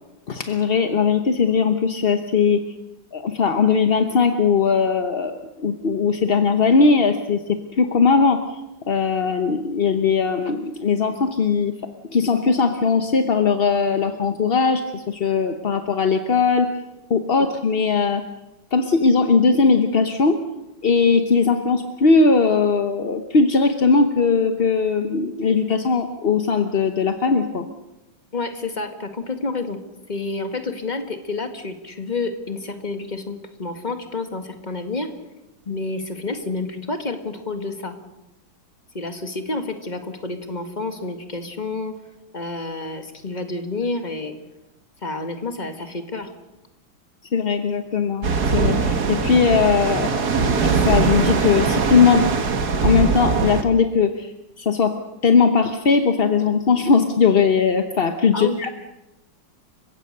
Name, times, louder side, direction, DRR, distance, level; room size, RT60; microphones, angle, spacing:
voice 1, 0.3-2.6 3.1-8.6 8.9-11.7 12.1-16.7 17.1-18.2 18.7-20.4 20.8-27.7 47.3-52.2 52.8-54.3 54.6-55.0 55.2-58.7, left 5 dB, 40° left, 7 dB, 0.9 m, -19 dB
voice 2, 28.3-29.8 30.1-35.1 35.7-38.0 38.9-42.0 42.3-44.3 45.0-46.3 58.3-58.6, left 3 dB, 25° left, 7 dB, 1.9 m, -29 dB
sound 1, 48.2-53.6, right 4 dB, 55° right, 2.0 m, -21 dB
30.0 x 16.5 x 6.7 m, 0.98 s
omnidirectional pair, 2.2 m